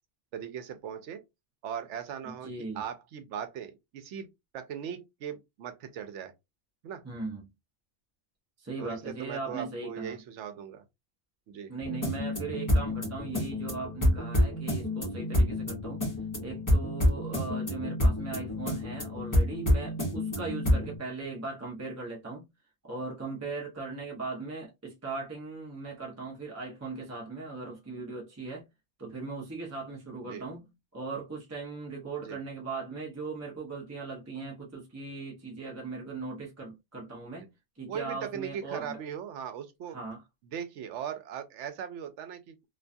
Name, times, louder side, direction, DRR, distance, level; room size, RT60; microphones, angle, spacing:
voice 1, 0.3-1.2 1.6-2.5 2.7-4.3 4.5-6.3 6.8-7.0 8.8-10.8 11.5-11.7 30.2-30.5 32.2-32.4 37.4-37.5 37.9-40.0 40.4-42.7, right 8 dB, 80° right, 0.9 m, -39 dB
voice 2, 2.2-2.8 7.0-7.5 8.6-10.2 11.7-16.0 16.4-22.4 22.8-28.6 29.0-37.5 37.8-39.0 39.9-40.2, right 3 dB, 20° right, 0.5 m, -39 dB
sound 1, 11.8-21.0, left 1 dB, 20° left, 0.7 m, -28 dB
2.5 x 2.2 x 2.5 m
omnidirectional pair, 1.2 m